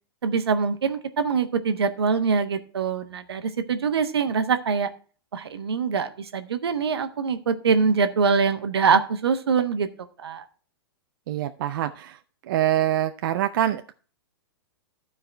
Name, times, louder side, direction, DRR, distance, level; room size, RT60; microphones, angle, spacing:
voice 1, 0.2-4.9 5.3-9.9 10.2-10.4, right 5 dB, 80° right, 9 dB, 1.1 m, -24 dB
voice 2, 11.3-12.2 12.5-13.9, right 12 dB, 55° right, 8 dB, 0.6 m, -25 dB
12.5 x 4.8 x 4.5 m, 0.39 s
hypercardioid pair, 115°, 13 cm